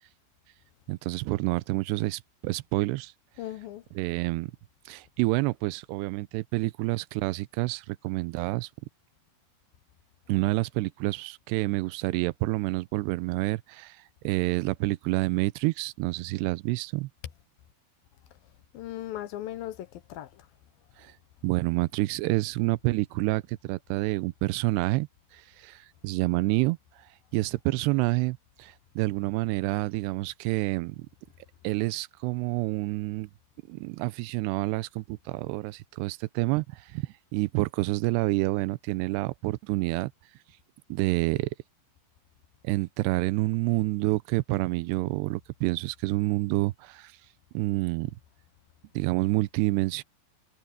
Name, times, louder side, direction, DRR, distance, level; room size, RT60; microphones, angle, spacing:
voice 1, 0.9-3.1 4.0-4.5 4.9-8.7 10.3-14.0 14.2-17.1 21.0-21.1 21.4-25.1 25.3-26.8 27.3-31.1 31.6-33.3 33.7-40.1 40.9-41.5 42.6-47.1 47.5-48.1 48.9-50.0, right 22 dB, 80° right, 2.5 m, -28 dB
voice 2, 3.4-3.8 18.7-20.5, left 13 dB, 75° left, 2.3 m, -38 dB
omnidirectional pair, 5.2 m